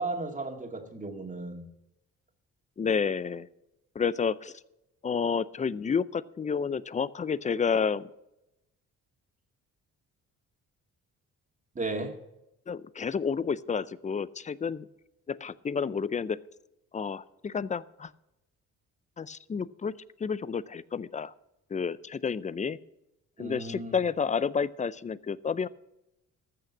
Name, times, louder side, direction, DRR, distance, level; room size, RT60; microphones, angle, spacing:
voice 1, 0.0-1.7 11.8-12.2 23.4-24.0, right 2 dB, 25° right, 4 dB, 2.1 m, -34 dB
voice 2, 2.8-3.5 3.9-4.5 5.0-8.1 12.7-14.9 15.3-16.4 16.9-18.1 19.2-19.9 20.2-21.3 21.7-22.8 23.4-25.7, left 6 dB, 25° left, 19 dB, 0.5 m, -30 dB
14.5 x 6.6 x 7.2 m, 0.89 s
cardioid pair, 90°, 30 cm